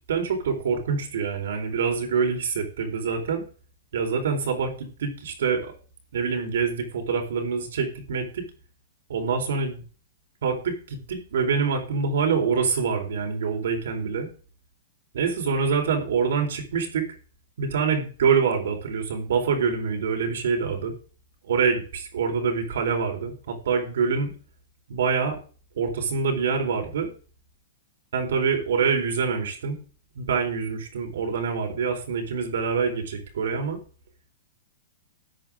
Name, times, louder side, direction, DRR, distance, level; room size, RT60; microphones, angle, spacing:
voice 1, 0.1-3.4 3.9-5.7 6.1-8.5 9.1-9.8 10.4-14.3 15.1-17.1 17.6-20.9 21.5-24.3 24.9-25.4 25.8-27.1 28.1-29.8 30.1-33.8, right 5 dB, 75° right, 3 dB, 4.2 m, -25 dB
14.0 x 8.6 x 3.7 m, 0.39 s
hypercardioid pair, 135°, 0 cm